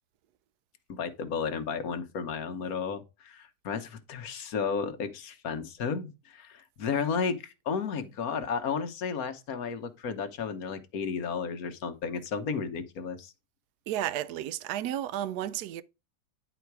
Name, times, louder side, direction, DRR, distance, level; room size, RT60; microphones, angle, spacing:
voice 1, 0.9-13.3, left 6 dB, 65° left, 1.4 m, -33 dB
voice 2, 13.9-15.8, right 12 dB, 80° right, 1.1 m, -32 dB
10.5 x 4.0 x 4.6 m
omnidirectional pair, 1.7 m